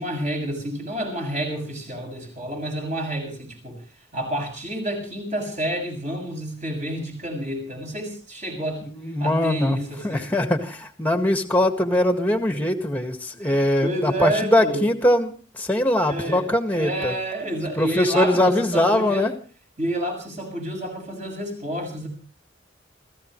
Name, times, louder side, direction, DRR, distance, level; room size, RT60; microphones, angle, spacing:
voice 1, 0.0-3.8 4.1-8.8 9.2-10.3 13.4-14.9 16.1-19.3 19.8-22.1, right 1 dB, 35° right, 2 dB, 7.0 m, -29 dB
voice 2, 8.9-9.8 10.0-17.1 17.8-19.3, left 1 dB, 10° left, 6 dB, 1.8 m, -22 dB
28.5 x 15.0 x 3.2 m, 0.38 s
head